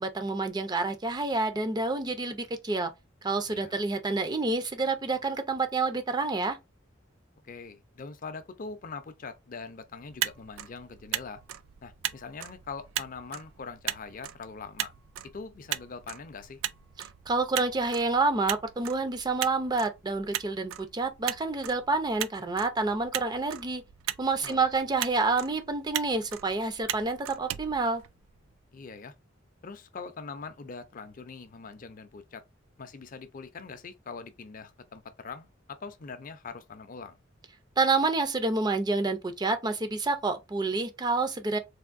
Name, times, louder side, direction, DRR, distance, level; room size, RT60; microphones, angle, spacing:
voice 1, 0.0-2.9 3.2-6.6 17.3-23.8 24.2-28.0 37.8-41.6, right 3 dB, 20° right, 0.4 m, -28 dB
voice 2, 7.4-11.4 11.8-14.9 15.3-16.6 24.4-24.7 28.7-29.1 29.6-32.4 32.8-37.2, left 5 dB, 45° left, 0.5 m, -42 dB
Motor vehicle (road), 10.0-28.5, right 12 dB, 85° right, 0.3 m, -38 dB
3.5 x 2.5 x 2.5 m
head